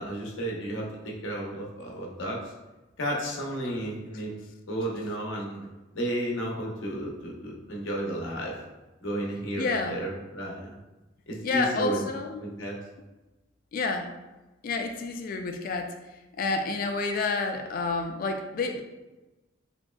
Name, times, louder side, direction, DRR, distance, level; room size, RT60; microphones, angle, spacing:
voice 1, 0.0-2.4 3.0-4.3 4.7-5.7 5.9-8.5 9.0-10.7 11.3-12.1 12.4-12.8, right 1 dB, 85° left, -2 dB, 0.7 m, -32 dB
voice 2, 9.6-10.0 11.4-12.4 13.7-14.1 14.6-16.0 16.4-18.8, left 3 dB, 45° left, 5 dB, 0.3 m, -29 dB
3.0 x 2.6 x 2.2 m, 1.1 s
head